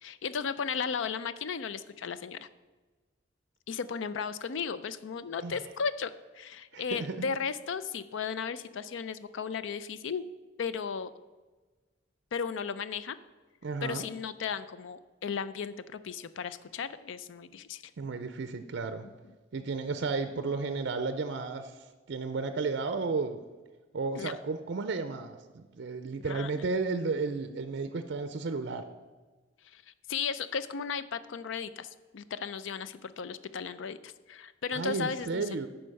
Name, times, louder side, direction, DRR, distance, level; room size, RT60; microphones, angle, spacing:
voice 1, 0.0-2.5 3.7-10.2 10.6-11.1 12.3-13.2 13.8-17.9 24.2-24.3 26.2-26.6 29.6-35.6, left 6 dB, 75° left, 14 dB, 0.4 m, -35 dB
voice 2, 6.7-7.3 13.6-14.1 18.0-19.1 19.5-23.4 23.9-28.9 34.7-35.7, right 4 dB, 60° right, 10 dB, 0.5 m, -33 dB
10.0 x 4.4 x 6.4 m, 1.3 s
head